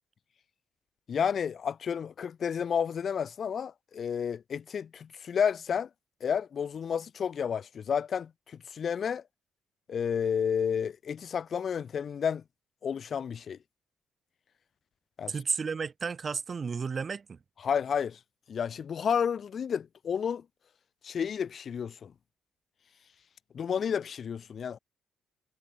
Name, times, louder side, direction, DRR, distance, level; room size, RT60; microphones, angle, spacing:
voice 1, 1.1-5.9 6.2-9.2 9.9-12.4 12.8-13.6 15.2-15.3 17.6-18.2 18.5-20.4 21.0-22.1 23.5-24.8, left 7 dB, 50° left, 1.3 m, -31 dB
voice 2, 15.3-17.4, right 5 dB, 40° right, 4.9 m, -32 dB
cardioid pair, 90°, 0 cm